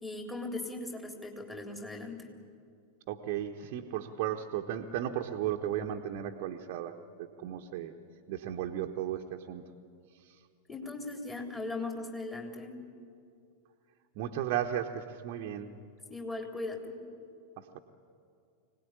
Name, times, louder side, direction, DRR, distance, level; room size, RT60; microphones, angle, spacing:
voice 1, 0.0-2.2 10.7-12.8 16.1-17.0, left 2 dB, 10° left, 2 dB, 3.7 m, -38 dB
voice 2, 3.1-7.9 8.3-9.6 14.2-15.7 17.6-17.8, right 10 dB, 45° right, 2 dB, 1.2 m, -35 dB
25.0 x 18.5 x 9.8 m, 2.4 s
figure-of-eight pair, 90°, 0 cm